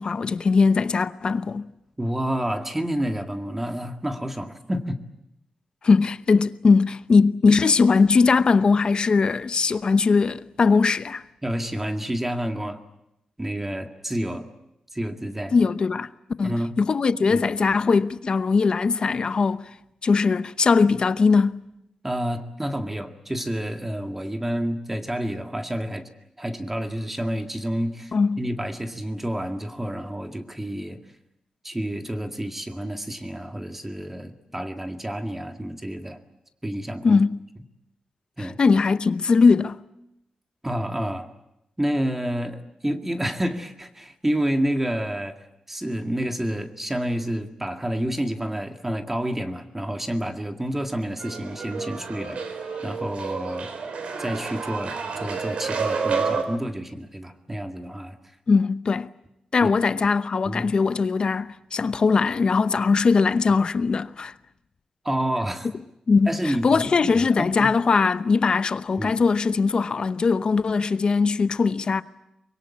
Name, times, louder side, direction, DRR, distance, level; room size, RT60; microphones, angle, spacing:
voice 1, 0.0-1.7 5.8-11.2 15.5-16.1 16.4-19.7 20.0-21.6 28.1-28.4 37.0-37.4 38.4-39.8 58.5-59.1 59.5-64.3 66.1-72.0, left 4 dB, 45° left, 0.9 m, -20 dB
voice 2, 2.0-5.0 7.5-7.6 11.4-12.8 13.4-14.5 14.9-15.6 16.4-16.7 17.3-17.4 22.0-26.0 26.4-31.0 31.6-36.2 36.6-37.2 38.4-38.6 40.6-41.3 41.8-45.4 45.7-53.7 54.2-58.2 59.6-59.7 60.4-60.7 65.0-65.7 66.3-66.9 67.2-67.7 69.0-69.2, equal, 10° right, 1.9 m, -29 dB
sound 1, 51.2-56.4, right 5 dB, 80° right, 3.8 m, -30 dB
24.5 x 22.5 x 8.6 m
wide cardioid pair, 125°, 2 cm